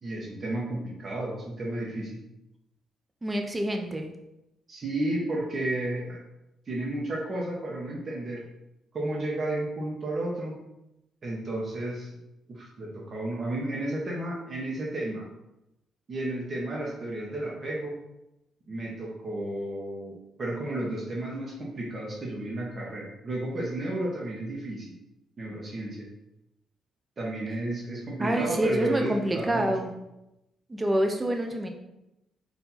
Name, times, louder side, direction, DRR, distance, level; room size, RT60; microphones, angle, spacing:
voice 1, 0.0-2.2 4.7-6.2 6.7-8.4 8.9-10.5 11.2-12.1 12.5-15.2 16.1-18.0 18.7-24.9 25.4-26.1 27.2-29.7, right 1 dB, 40° right, -3 dB, 1.0 m, -32 dB
voice 2, 3.2-4.1 28.2-29.9 30.7-31.7, right 1 dB, 20° right, 4 dB, 0.6 m, -27 dB
4.4 x 2.7 x 4.0 m, 0.90 s
cardioid pair, 90°, 0 cm